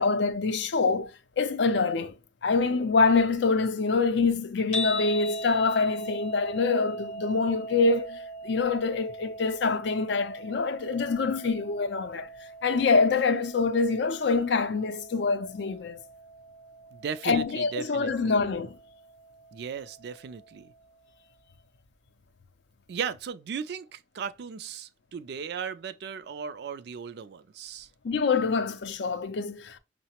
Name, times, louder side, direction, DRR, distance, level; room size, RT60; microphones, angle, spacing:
voice 1, 0.0-2.1 2.4-12.3 12.6-16.0 17.2-18.7 28.0-29.8, left 4 dB, 65° left, 0.5 m, -25 dB
sound 1, 4.7-21.0, right 1 dB, 35° left, 0.8 m, -41 dB
voice 2, 16.9-18.4 19.5-20.7 22.9-27.9, right 6 dB, 55° right, 0.3 m, -36 dB
5.6 x 2.0 x 2.9 m
head